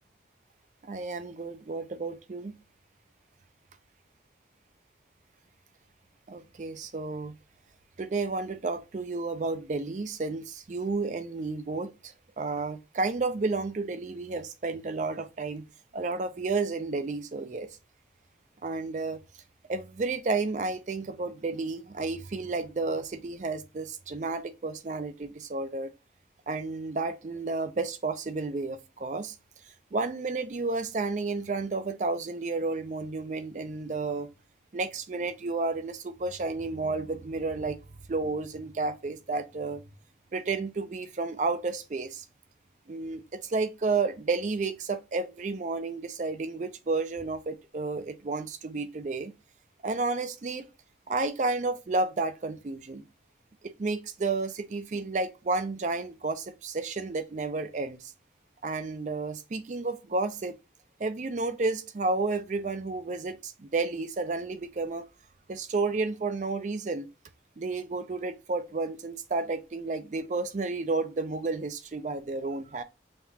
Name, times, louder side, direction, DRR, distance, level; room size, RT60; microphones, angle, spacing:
voice 1, 0.8-2.5 6.3-7.3 8.0-11.9 12.4-15.6 15.9-17.7 18.6-19.2 19.7-25.9 26.5-29.4 29.9-34.3 34.7-37.8 38.1-39.8 40.3-42.2 42.9-49.3 49.8-50.6 51.1-53.0 53.6-58.1 58.6-60.5 61.0-65.1 65.5-67.1 67.6-72.8, right 3 dB, 40° right, 0.4 m, -31 dB
5.2 x 2.4 x 2.7 m
head